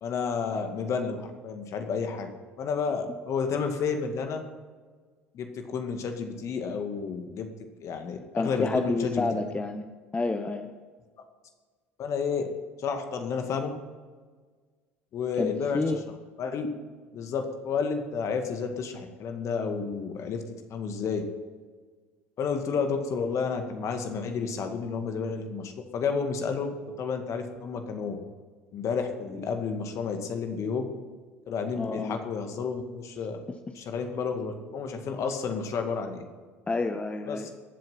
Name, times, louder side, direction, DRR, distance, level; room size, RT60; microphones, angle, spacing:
voice 1, 0.0-2.3 2.6-4.4 5.3-7.5 7.8-9.5 12.0-12.5 12.8-13.7 15.1-16.0 16.4-16.7 17.1-20.4 20.7-21.2 22.4-28.2 28.7-31.0 31.5-33.4 33.7-36.2 37.3-37.5, left 5 dB, 45° left, 5 dB, 2.1 m, -31 dB
voice 2, 8.4-9.8 10.1-10.7 15.4-16.0 31.8-32.2 36.7-37.5, left 3 dB, 20° left, 7 dB, 0.9 m, -29 dB
22.0 x 7.8 x 5.9 m, 1.5 s
figure-of-eight pair, 65°, 7 cm